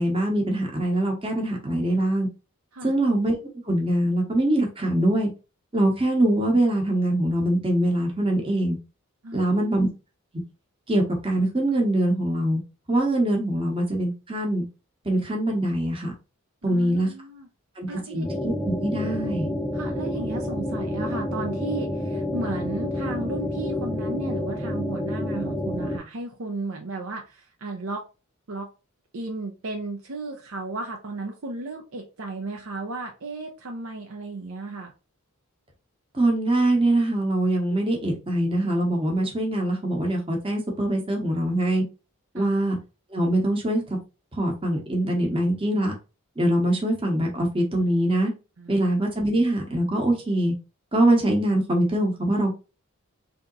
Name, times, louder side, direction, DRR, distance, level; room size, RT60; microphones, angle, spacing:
voice 1, 0.0-2.3 2.8-3.3 3.7-5.3 5.7-8.8 9.3-9.9 10.9-12.6 12.9-14.6 15.0-16.1 16.6-17.1 17.8-19.5 36.1-41.8 42.3-42.8 43.1-44.0 44.4-45.9 46.4-48.3 48.7-50.5 50.9-52.6, right 1 dB, 25° right, 0.9 m, -23 dB
voice 2, 9.2-9.9 16.6-17.5 17.9-18.3 19.7-28.1 28.5-28.7 29.1-34.9 42.3-42.5 48.6-48.9, right 2 dB, 70° right, 0.6 m, -34 dB
sound 1, 18.2-26.0, left 1 dB, ahead, 0.5 m, -29 dB
3.5 x 2.8 x 3.9 m
head